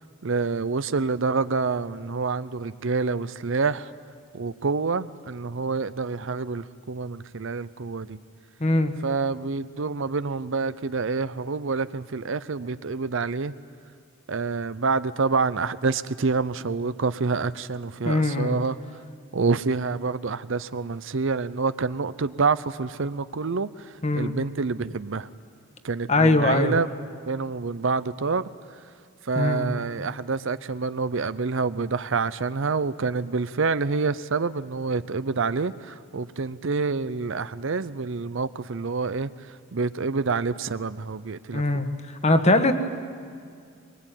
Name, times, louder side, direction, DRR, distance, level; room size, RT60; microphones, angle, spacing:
voice 1, 0.2-3.9 4.3-8.2 9.0-13.5 14.3-18.8 19.3-25.3 25.8-26.9 27.2-28.5 29.2-41.6, right 4 dB, 60° right, 15 dB, 0.6 m, -27 dB
voice 2, 8.6-8.9 18.0-18.6 24.0-24.3 26.1-26.7 29.3-29.7 41.5-41.9 42.2-42.7, left 2 dB, 30° left, 8 dB, 1.4 m, -21 dB
24.0 x 21.5 x 9.1 m, 2.3 s
head